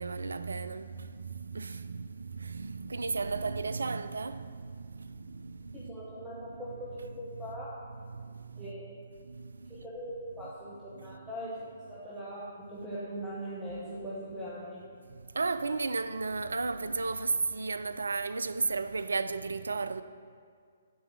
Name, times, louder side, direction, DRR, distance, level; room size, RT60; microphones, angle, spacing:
voice 1, 0.0-8.8 9.2-9.9 10.4-10.5 10.9-11.3 15.1-20.0, right 4 dB, 65° right, 0.3 m, -35 dB
voice 2, 5.9-7.7 8.6-9.0 9.7-14.8, equal, 5° right, 1.1 m, -41 dB
9.9 x 4.7 x 6.2 m
figure-of-eight pair, 130°, 0 cm